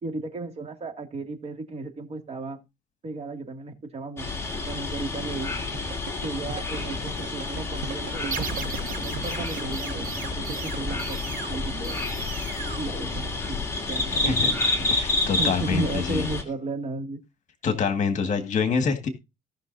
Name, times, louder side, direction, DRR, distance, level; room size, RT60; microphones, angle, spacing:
voice 1, 0.0-2.6 3.0-4.3 4.7-5.5 6.2-12.0 12.8-15.1 15.4-17.2, right 3 dB, 40° right, 2.4 m, -35 dB
sound 1, 4.2-16.4, left 3 dB, 15° left, 2.8 m, -29 dB
sound 2, 5.7-10.9, right 9 dB, 85° right, 0.9 m, -37 dB
sound 3, 8.3-13.7, right 5 dB, 55° right, 5.0 m, -37 dB
voice 2, 14.9-16.3 17.6-19.1, left 6 dB, 45° left, 1.8 m, -26 dB
17.5 x 6.1 x 2.7 m
cardioid pair, 110°, 17 cm